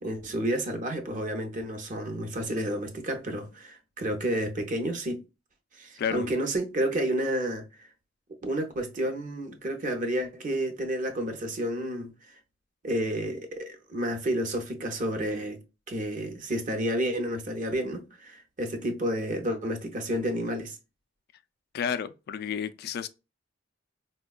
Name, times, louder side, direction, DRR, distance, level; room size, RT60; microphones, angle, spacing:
voice 1, 0.0-5.2 5.8-7.9 8.4-12.4 12.8-20.8, right 1 dB, 45° right, 0.7 m, -30 dB
voice 2, 21.7-23.1, left 7 dB, 55° left, 0.3 m, -31 dB
4.4 x 2.2 x 2.3 m
head